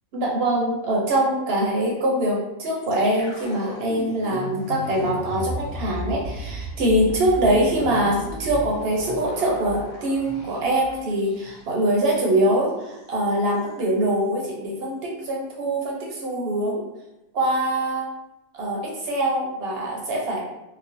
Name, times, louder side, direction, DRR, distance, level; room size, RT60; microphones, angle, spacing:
voice 1, 0.1-16.8 17.3-18.1 18.5-20.4, right 1 dB, 60° right, -2 dB, 0.7 m, -23 dB
sound 1, 2.8-11.9 12.1-12.3 12.7-13.1, right 1 dB, 85° left, 1.0 m, -35 dB
3.0 x 2.0 x 2.5 m, 0.96 s
omnidirectional pair, 1.4 m